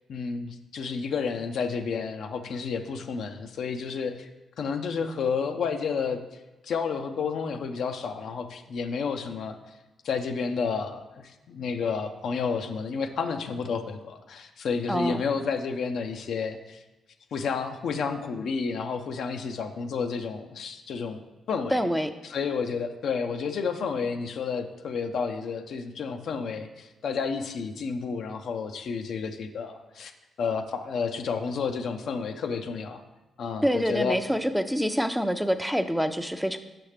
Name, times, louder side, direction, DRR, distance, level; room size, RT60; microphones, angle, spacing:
voice 1, 0.1-4.3 4.6-6.2 6.6-9.6 10.0-16.8 17.3-21.2 21.5-21.8 22.2-30.1 30.4-33.0 33.4-34.2, left 5 dB, 65° left, 6 dB, 0.5 m, -31 dB
voice 2, 14.9-15.2 21.7-22.1 33.6-36.6, equal, ahead, 9 dB, 0.5 m, -26 dB
6.2 x 5.9 x 3.3 m, 1.1 s
hypercardioid pair, 40°, 0 cm